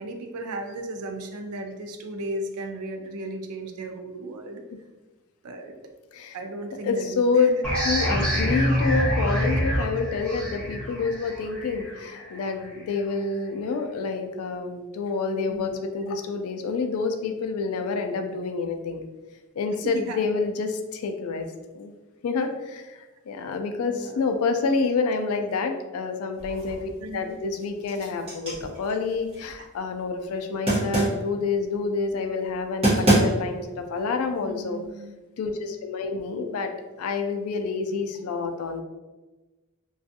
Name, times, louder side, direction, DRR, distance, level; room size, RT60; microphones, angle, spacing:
voice 1, 0.0-4.6 5.4-5.8 6.3-7.5 8.0-8.1 8.3-8.8 15.5-15.8 19.8-20.5 23.8-24.2 27.0-27.7 34.4-35.1, right 2 dB, 70° right, 4 dB, 0.4 m, -36 dB
voice 2, 6.8-19.0 19.6-21.5 21.7-21.9 22.2-34.8 35.4-36.7 37.0-38.8, left 4 dB, 65° left, 6 dB, 0.3 m, -28 dB
sound 1, 7.6-13.0, equal, 5° left, 1.0 m, -26 dB
sound 2, 26.4-27.0 27.4-29.6 30.7-31.3 32.5-32.6 32.8-33.6, right 1 dB, 25° right, 0.9 m, -25 dB
2.4 x 2.3 x 2.6 m, 1.2 s
head